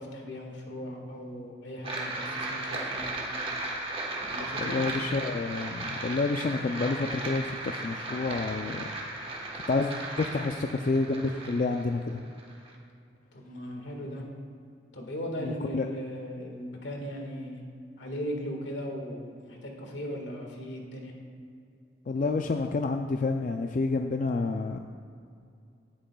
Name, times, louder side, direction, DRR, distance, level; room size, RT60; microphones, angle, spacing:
voice 1, 0.0-3.3 4.3-4.8 13.3-14.2 14.9-17.6 18.0-21.1, equal, 80° left, 0 dB, 1.7 m, -38 dB
sound 1, 1.8-12.8, right 2 dB, 30° right, 1.2 m, -36 dB
voice 2, 4.6-8.9 9.7-9.9 10.2-12.2 15.4-15.9 22.1-24.8, left 3 dB, 45° left, 5 dB, 0.4 m, -29 dB
17.0 x 8.6 x 2.3 m, 2.4 s
head